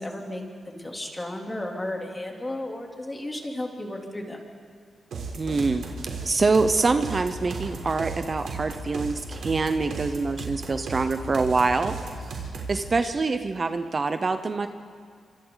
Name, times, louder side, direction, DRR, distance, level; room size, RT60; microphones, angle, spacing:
voice 1, 0.0-4.4, left 1 dB, 20° left, 1 dB, 3.2 m, -34 dB
sound 1, 5.1-12.8, right 4 dB, 90° right, 3.8 m, -35 dB
voice 2, 5.3-5.9 6.2-11.9 12.7-14.7, right 3 dB, 40° right, 9 dB, 0.8 m, -25 dB
26.0 x 26.0 x 4.0 m, 2.1 s
cardioid pair, 85°, 0 cm